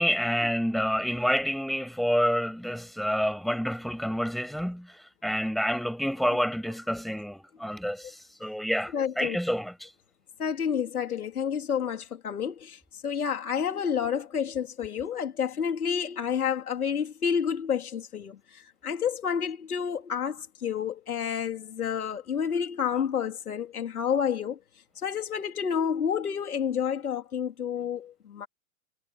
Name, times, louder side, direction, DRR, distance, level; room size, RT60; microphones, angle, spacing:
voice 1, 0.0-4.9 5.2-8.1 8.4-9.9, equal, ahead, 7.7 m, -28 dB
voice 2, 8.9-9.4 10.4-18.4 18.8-24.6 25.0-28.5, left 7 dB, 80° left, 3.9 m, -29 dB
hypercardioid pair, 120°, 43 cm